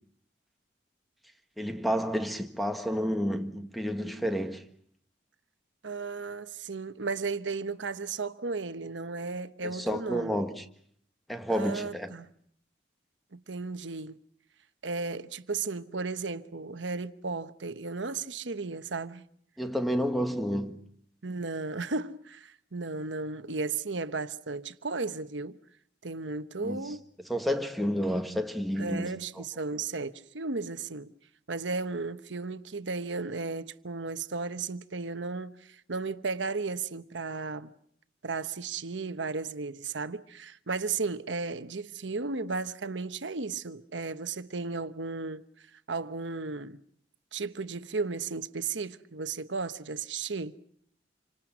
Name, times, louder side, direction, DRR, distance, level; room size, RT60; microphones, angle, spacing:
voice 1, 1.6-4.6 9.6-10.6 11.3-12.1 19.6-20.8 26.6-26.9 27.3-29.1, equal, ahead, 1.5 m, -30 dB
voice 2, 5.8-10.4 11.5-12.3 13.3-14.2 14.8-19.2 21.2-25.6 26.0-27.0 28.8-31.1 31.5-37.7 38.2-45.4 45.9-46.8 47.3-50.5, right 4 dB, 85° right, 1.1 m, -34 dB
28.5 x 25.5 x 6.2 m
head